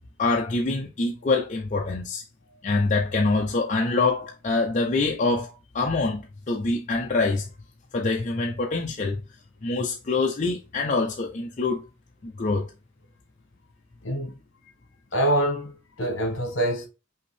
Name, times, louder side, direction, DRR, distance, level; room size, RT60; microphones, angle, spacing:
voice 1, 0.2-2.2 2.6-7.4 7.9-9.2 9.6-11.8 12.2-12.7, left 3 dB, 35° left, 0.5 m, -25 dB
voice 2, 14.0-14.4 15.1-16.9, right 1 dB, 60° left, 1.4 m, -25 dB
5.5 x 2.7 x 3.2 m
head